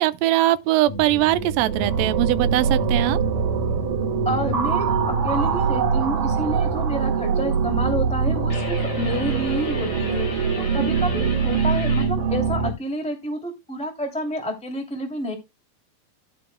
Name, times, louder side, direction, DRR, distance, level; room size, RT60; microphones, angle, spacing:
voice 1, 0.0-3.2, right 15 dB, 75° right, 2.2 m, -21 dB
sound 1, 0.9-6.7, left 1 dB, 55° left, 4.2 m, -34 dB
sound 2, 1.2-12.7, right 6 dB, 60° right, 3.2 m, -23 dB
voice 2, 4.2-15.3, equal, ahead, 1.9 m, -29 dB
sound 3, 8.5-12.1, left 3 dB, 25° left, 3.3 m, -35 dB
12.0 x 11.0 x 2.2 m
omnidirectional pair, 4.5 m